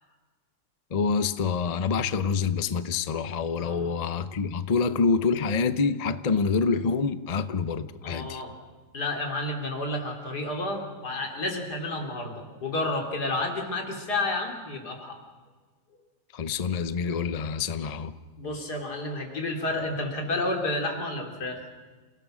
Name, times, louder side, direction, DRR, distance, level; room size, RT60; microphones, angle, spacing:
voice 1, 0.9-8.4 16.3-18.1, left 5 dB, 40° left, 12 dB, 0.5 m, -26 dB
voice 2, 3.6-3.9 8.0-8.5 8.9-15.2 18.4-21.6, left 2 dB, 75° left, 2 dB, 3.5 m, -31 dB
28.5 x 17.0 x 6.3 m, 1.4 s
omnidirectional pair, 1.7 m